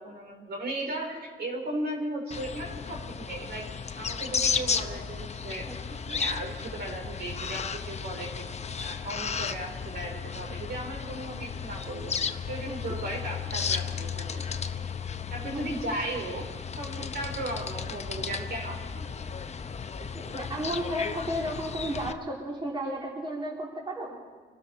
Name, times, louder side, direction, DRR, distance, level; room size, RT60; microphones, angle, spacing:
voice 1, 0.0-3.7 4.0-5.7 6.0-8.5 8.8-12.2 12.5-14.4 15.3-16.5 16.8-19.1, right 1 dB, 55° right, 1 dB, 3.7 m, -36 dB
sound 1, 2.3-22.1, left 6 dB, 35° left, 0.8 m, -34 dB
voice 2, 20.1-24.2, equal, 25° right, -2 dB, 3.0 m, -33 dB
24.5 x 12.5 x 4.3 m, 1.5 s
cardioid pair, 90°, 20 cm